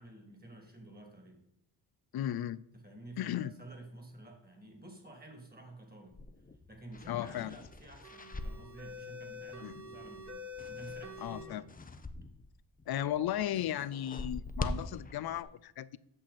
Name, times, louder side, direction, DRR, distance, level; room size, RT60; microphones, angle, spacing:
voice 1, 0.0-1.4 2.8-6.2 6.7-11.6, right 1 dB, 20° right, 2.5 m, -51 dB
voice 2, 2.1-2.6 3.2-3.5 7.1-7.5 9.6-9.7 11.2-11.6 12.9-16.0, left 11 dB, 60° left, 0.5 m, -35 dB
sound 1, 6.1-12.5 12.7-15.4, left 2 dB, 20° left, 0.7 m, -44 dB
sound 2, 8.0-11.5, left 3 dB, 40° right, 2.3 m, -46 dB
8.7 x 6.4 x 4.2 m
cardioid pair, 90°, 43 cm